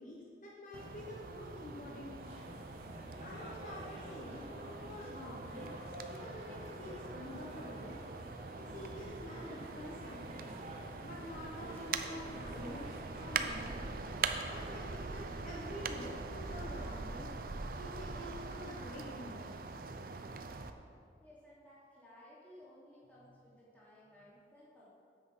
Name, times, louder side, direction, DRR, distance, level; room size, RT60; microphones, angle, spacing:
voice 1, 0.0-2.4 3.2-5.7 6.1-8.0 8.6-10.5 11.0-13.9 14.5-17.3 17.8-19.6, left 1 dB, 45° left, -4 dB, 1.1 m, -48 dB
sound 1, 0.7-20.7, right 4 dB, 55° right, 0.6 m, -43 dB
sound 2, 2.2-14.9, right 1 dB, 35° right, 1.6 m, -50 dB
voice 2, 12.5-13.0 21.2-24.9, equal, 10° left, -9 dB, 3.1 m, -59 dB
9.8 x 7.8 x 5.5 m, 2.3 s
head